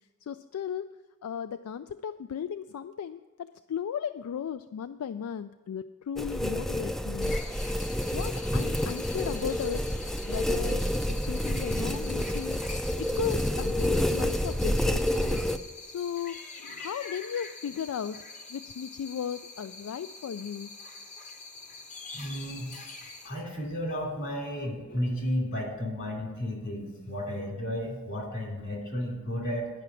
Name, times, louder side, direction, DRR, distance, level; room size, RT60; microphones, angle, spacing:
voice 1, 0.2-0.9 1.2-7.4 8.1-9.9 10.3-12.6 13.0-15.5 15.8-18.2 18.5-20.7, left 8 dB, 85° left, 12 dB, 0.3 m, -36 dB
sound 1, 6.2-15.6, equal, ahead, 0.3 m, -29 dB
sound 2, 7.2-23.3, left 3 dB, 35° left, 1.0 m, -45 dB
voice 2, 22.1-22.7 23.2-29.7, equal, 55° left, 0 dB, 3.0 m, -33 dB
10.5 x 5.8 x 8.2 m, 1.2 s
head